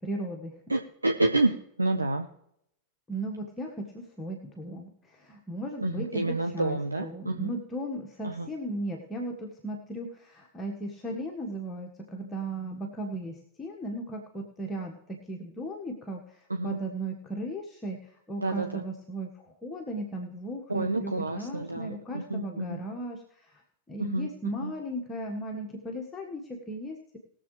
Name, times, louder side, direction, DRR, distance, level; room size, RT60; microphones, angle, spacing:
voice 1, 0.0-0.5 3.1-6.2 6.5-23.6 23.9-27.2, right 1 dB, 15° left, 0 dB, 1.5 m, -36 dB
voice 2, 0.7-2.3 5.8-7.5 8.2-8.5 16.5-16.8 18.4-18.8 20.7-22.8 24.0-24.3 24.6-24.7, right 2 dB, 80° right, 5 dB, 0.7 m, -29 dB
20.5 x 7.2 x 3.3 m, 0.74 s
figure-of-eight pair, 90°, 0 cm